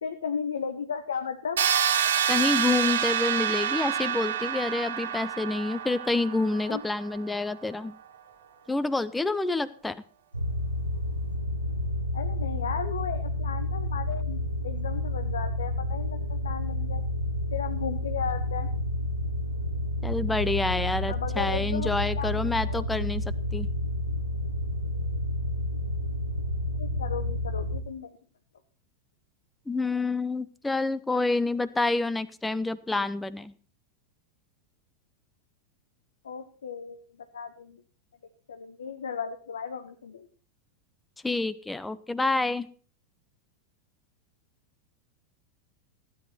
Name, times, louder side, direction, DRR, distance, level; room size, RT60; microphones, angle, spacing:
voice 1, 0.0-1.6 6.7-6.8 12.1-17.0 17.5-18.7 21.1-21.9 22.1-22.8 26.8-28.1 36.2-37.0 37.3-37.8 38.5-40.3, left 6 dB, 65° left, 9 dB, 1.1 m, -35 dB
sound 1, 1.6-7.4, right 9 dB, 65° right, 1.8 m, -28 dB
voice 2, 2.3-8.0 8.7-10.0 20.0-23.2 23.5-23.7 29.7-33.5 41.2-42.7, left 3 dB, 10° left, 17 dB, 0.8 m, -28 dB
sound 2, 10.3-27.8, left 1 dB, 85° right, 1.0 m, -30 dB
15.5 x 10.5 x 4.3 m, 0.41 s
figure-of-eight pair, 90°, 0 cm